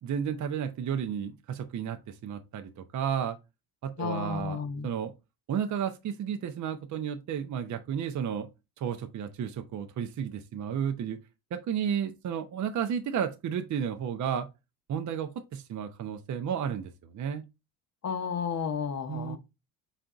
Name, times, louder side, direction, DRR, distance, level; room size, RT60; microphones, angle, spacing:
voice 1, 0.0-3.4 3.8-5.1 5.5-8.5 8.8-11.2 11.5-14.5 14.9-17.4 19.1-19.4, right 8 dB, 40° right, 0.6 m, -32 dB
voice 2, 4.0-4.9 18.0-19.4, left 6 dB, 40° left, 0.7 m, -32 dB
4.2 x 3.9 x 2.4 m
supercardioid pair, 75°, 44 cm